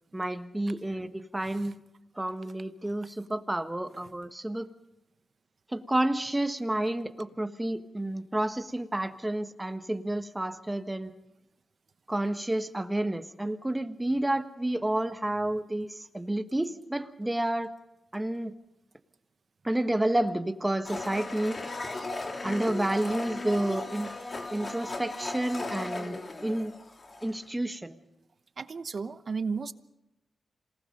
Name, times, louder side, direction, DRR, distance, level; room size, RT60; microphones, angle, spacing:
voice 1, 0.1-1.7 2.1-4.7 5.7-11.1 12.1-17.7 18.1-18.5 19.6-21.6 22.4-24.1 24.5-26.7 27.2-28.0, right 1 dB, 15° right, 9 dB, 1.5 m, -30 dB
Domestic sounds home sounds, 20.8-27.4, left 2 dB, 45° left, 3.1 m, -37 dB
voice 2, 28.6-29.7, right 5 dB, 60° right, 12 dB, 1.0 m, -34 dB
27.5 x 19.0 x 5.4 m, 0.94 s
cardioid pair, 60°, 0 cm